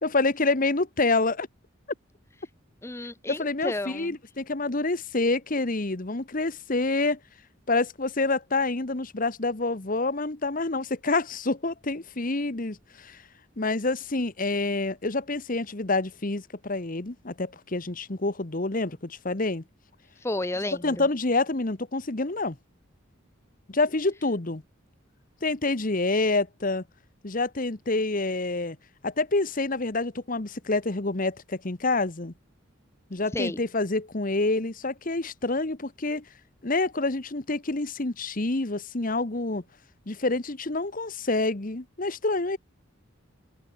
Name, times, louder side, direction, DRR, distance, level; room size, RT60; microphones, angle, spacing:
voice 1, 0.0-1.5 3.3-7.2 7.7-13.2 13.6-19.6 20.8-22.6 23.7-24.6 25.4-26.8 27.2-28.8 29.0-32.3 33.1-36.2 36.6-39.6 40.1-42.6, left 2 dB, 40° left, 1.3 m, -27 dB
voice 2, 2.8-4.1 20.2-20.9 33.3-33.6, left 2 dB, 15° left, 0.7 m, -32 dB
open air
head